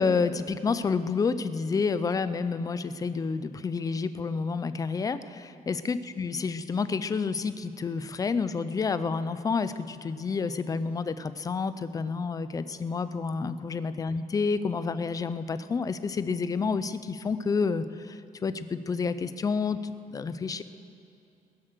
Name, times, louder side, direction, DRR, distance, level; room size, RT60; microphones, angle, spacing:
voice 1, 0.0-20.6, left 5 dB, 25° left, 13 dB, 0.4 m, -29 dB
21.5 x 7.5 x 6.6 m, 2.6 s
cardioid pair, 165°, 15 cm